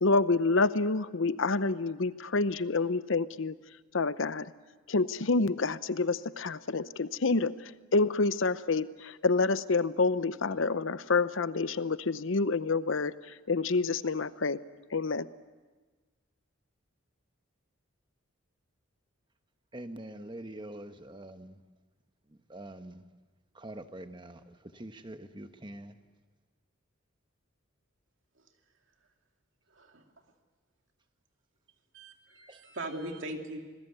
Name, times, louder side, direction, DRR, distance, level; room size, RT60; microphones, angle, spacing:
voice 1, 0.0-3.5 3.9-4.5 4.9-7.5 7.9-13.1 13.5-14.6 14.9-15.3, left 3 dB, 65° left, 0.8 m, -28 dB
voice 2, 19.7-21.6 22.3-23.0 23.5-26.0 32.5-32.6, right 1 dB, 20° right, 1.1 m, -45 dB
voice 3, 31.9-33.6, right 1 dB, 60° right, 2.6 m, -40 dB
26.5 x 20.0 x 8.1 m
head